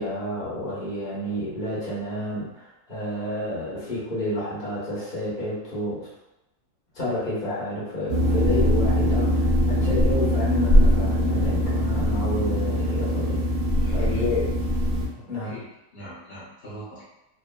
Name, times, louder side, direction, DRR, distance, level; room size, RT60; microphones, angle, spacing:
voice 1, 0.0-6.1 6.9-13.4 13.9-14.4 15.3-15.5, left 1 dB, 30° left, -9 dB, 0.9 m, -30 dB
sound 1, 8.1-15.1, equal, 90° right, 1.4 m, -22 dB
voice 2, 13.8-14.4 15.1-15.7 15.9-17.0, left 1 dB, 65° left, -10 dB, 0.5 m, -41 dB
3.4 x 2.0 x 2.2 m, 0.95 s
omnidirectional pair, 1.9 m